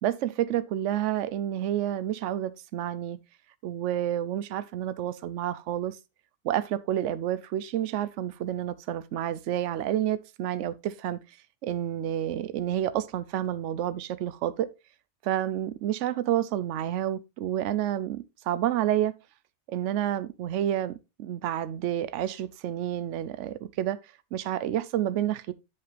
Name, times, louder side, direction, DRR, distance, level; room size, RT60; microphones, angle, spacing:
voice 1, 0.0-3.2 3.6-6.0 6.4-11.2 11.6-14.7 15.2-19.1 19.7-24.0 24.3-25.5, right 11 dB, 85° right, 0.9 m, -29 dB
9.5 x 5.5 x 3.3 m
omnidirectional pair, 1.2 m